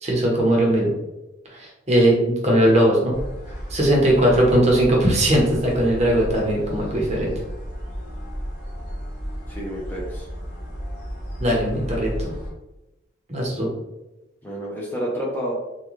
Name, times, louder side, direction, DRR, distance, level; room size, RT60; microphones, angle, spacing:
voice 1, 0.0-0.9 1.5-3.1 3.7-7.3 11.4-12.3 13.3-13.7, right 1 dB, 30° right, -2 dB, 0.7 m, -19 dB
sound 1, 3.1-12.5, equal, 30° left, 1.3 m, -33 dB
voice 2, 9.5-10.3 14.4-15.5, equal, 10° left, -4 dB, 0.5 m, -29 dB
3.6 x 2.2 x 3.0 m, 0.97 s
head